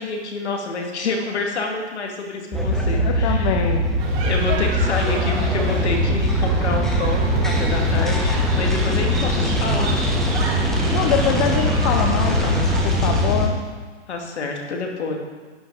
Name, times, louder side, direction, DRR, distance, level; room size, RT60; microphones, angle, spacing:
voice 1, 0.0-3.7 4.2-10.0 14.1-15.2, left 3 dB, 70° left, 1 dB, 2.4 m, -28 dB
sound 1, 2.5-13.5, left 1 dB, ahead, 1.1 m, -21 dB
voice 2, 2.7-3.9 10.9-13.5, left 8 dB, 30° left, 4 dB, 0.8 m, -24 dB
sound 2, 4.0-13.3, right 4 dB, 30° right, 2.0 m, -29 dB
11.5 x 8.7 x 4.0 m, 1.4 s
hypercardioid pair, 130°, 35 cm